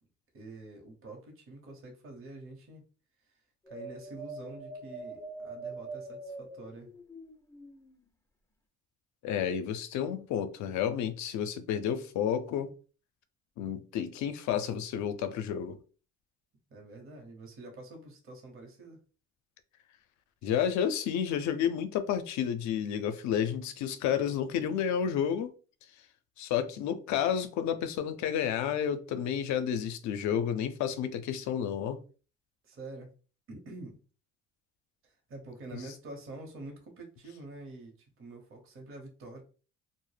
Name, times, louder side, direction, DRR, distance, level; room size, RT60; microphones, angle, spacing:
voice 1, 0.3-2.9 3.2-3.3 3.7-6.9 16.7-19.0 32.6-33.1 33.5-34.0 35.0-39.4, right 2 dB, 45° right, 0.8 m, -47 dB
sound 1, 3.7-7.9, right 3 dB, 10° left, 0.4 m, -43 dB
voice 2, 9.2-12.7 13.6-15.8 20.4-25.5 26.4-32.0, left 8 dB, 70° left, 0.5 m, -31 dB
2.1 x 2.0 x 3.2 m
supercardioid pair, 75°, 30 cm